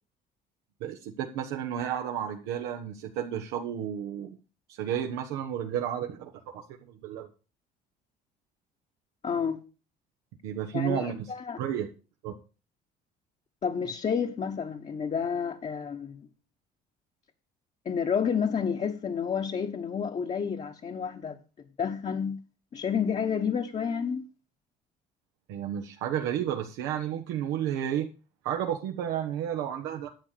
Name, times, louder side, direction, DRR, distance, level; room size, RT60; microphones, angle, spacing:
voice 1, 0.8-4.4 4.7-7.3 10.4-11.3 11.6-11.9 12.2-12.3 25.5-28.1 28.4-30.1, right 9 dB, 90° right, 1.3 m, -32 dB
voice 2, 9.2-9.6 10.7-11.6 13.6-16.2 17.8-21.4 21.8-22.4 22.7-24.3, left 7 dB, 40° left, 1.3 m, -30 dB
10.5 x 7.4 x 6.8 m
supercardioid pair, 90°, 17 cm